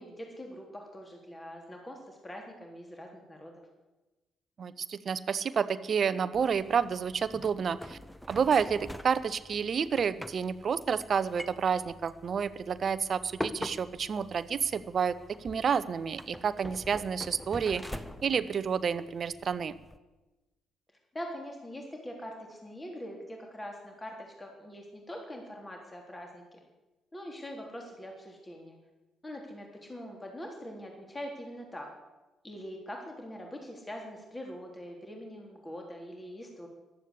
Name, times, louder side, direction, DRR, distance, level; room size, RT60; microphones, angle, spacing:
voice 1, 0.0-3.6 21.1-26.6 27.1-28.8 29.2-31.9 32.4-36.7, equal, 20° left, 1 dB, 3.4 m, -43 dB
voice 2, 4.6-8.0 8.3-19.7, right 6 dB, 45° right, 15 dB, 0.8 m, -30 dB
sound 1, 6.3-20.0, left 1 dB, 5° left, 1.1 m, -45 dB
15.0 x 11.5 x 8.3 m, 1.1 s
figure-of-eight pair, 45°, 0 cm